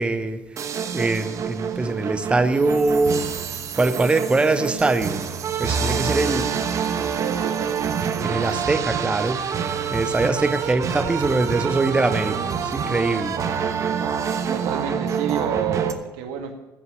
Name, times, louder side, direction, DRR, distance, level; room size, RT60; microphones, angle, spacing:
voice 1, 0.0-3.4 3.7-5.2 5.6-6.6 8.2-13.4, right 3 dB, 15° right, 10 dB, 0.8 m, -23 dB
sound 1, 0.6-15.9, right 7 dB, 45° right, 1.2 m, -26 dB
voice 2, 5.7-6.4 6.9-7.8 14.5-16.5, right 8 dB, 85° right, 5 dB, 1.9 m, -30 dB
15.5 x 5.7 x 9.6 m, 1.1 s
cardioid pair, 110°, 8 cm